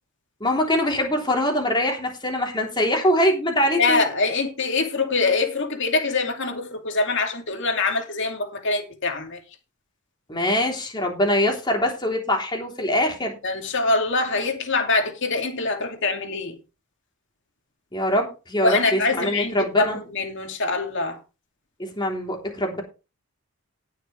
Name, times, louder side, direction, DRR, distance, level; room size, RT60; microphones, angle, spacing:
voice 1, 0.4-4.0 10.3-13.4 17.9-20.0 21.8-22.8, left 1 dB, 20° left, 3.5 m, -23 dB
voice 2, 3.8-9.4 13.4-16.6 18.6-21.2, left 3 dB, 55° left, 2.5 m, -24 dB
18.5 x 6.6 x 3.4 m
head